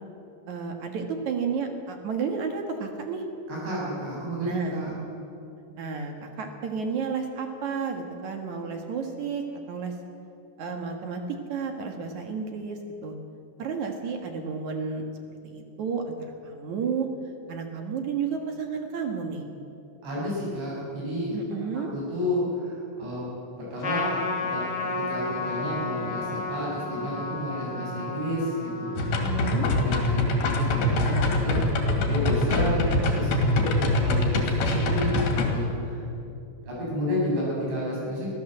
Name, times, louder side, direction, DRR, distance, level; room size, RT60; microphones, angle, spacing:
voice 1, 0.5-3.2 4.4-4.8 5.8-9.9 10.6-11.2 11.5-13.1 13.6-15.0 15.4-16.2 16.4-17.1 17.5-19.4 21.3-21.9 29.1-29.7, right 5 dB, 55° right, 4 dB, 2.2 m, -31 dB
voice 2, 3.5-4.9 20.0-21.3 21.9-23.2 23.6-28.9 29.6-31.6 32.0-32.9 33.1-36.0 36.6-38.3, equal, 75° right, -5 dB, 9.7 m, -31 dB
Trumpet, 23.8-30.5, left 3 dB, 35° left, 1.9 m, -33 dB
sound 1, 29.0-35.5, left 1 dB, 60° left, 4.0 m, -24 dB
24.5 x 15.5 x 7.9 m, 2.7 s
omnidirectional pair, 5.1 m